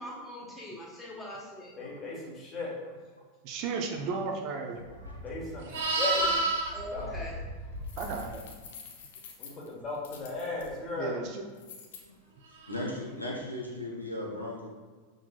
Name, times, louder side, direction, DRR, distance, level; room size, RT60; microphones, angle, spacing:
voice 1, 0.0-1.9 5.8-6.5 6.7-7.4, left 1 dB, 10° left, -4 dB, 1.2 m, -42 dB
voice 2, 1.8-2.7 5.2-6.2 6.9-7.1 9.4-11.2, left 3 dB, 25° left, -3 dB, 1.3 m, -36 dB
voice 3, 3.4-4.8 8.0-8.4 11.0-11.4, right 4 dB, 40° right, 3 dB, 0.5 m, -34 dB
voice 4, 4.8-5.2 5.5-6.0 9.4-9.7 10.6-10.7 12.0-12.1 12.7-14.7, left 1 dB, 90° left, -3 dB, 0.9 m, -39 dB
Livestock farm animals working animals, 5.0-8.3 12.6-12.9, right 2 dB, 60° right, 1.5 m, -31 dB
sound 1, 7.8-10.7 11.6-12.0, left 6 dB, 55° left, 0.6 m, -48 dB
5.7 x 3.8 x 2.3 m, 1.5 s
figure-of-eight pair, 90°, 0 cm